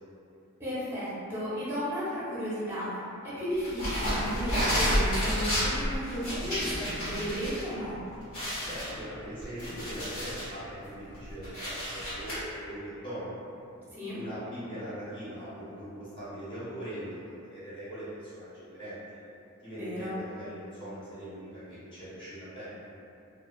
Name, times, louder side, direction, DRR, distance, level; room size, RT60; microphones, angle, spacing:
voice 1, 0.6-8.0 13.9-14.2 19.7-20.2, equal, 10° right, -11 dB, 0.7 m, -34 dB
sound 1, 3.6-7.6 7.9-8.0 8.3-10.5 11.0-12.3, equal, 70° left, 1.3 m, -30 dB
voice 2, 8.6-13.4 14.1-19.2 19.6-22.9, equal, 25° left, -12 dB, 0.8 m, -41 dB
2.4 x 2.3 x 2.2 m, 2.7 s
head